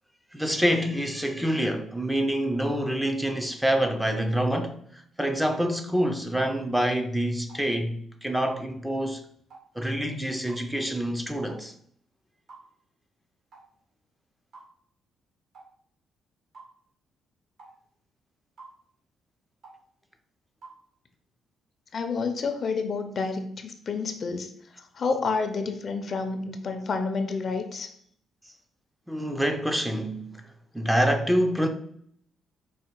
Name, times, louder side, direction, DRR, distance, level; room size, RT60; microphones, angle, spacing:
voice 1, 0.3-4.8 5.2-9.2 9.8-11.7 29.1-30.4 30.7-31.7, equal, 5° right, 0.5 m, -26 dB
sound 1, 6.5-6.7 7.5-7.7 8.5-8.7 9.5-9.7 10.5-10.7 11.5-11.7 12.5-12.7 13.5-13.7 14.5-14.7 15.5-15.7 16.5-16.7 17.6-17.8 18.6-18.8 19.6-19.8 20.6-20.8, right 3 dB, 65° right, 1.8 m, -48 dB
voice 2, 21.9-27.9, left 4 dB, 50° left, 0.6 m, -29 dB
4.7 x 2.3 x 4.4 m
cardioid pair, 90°, 0 cm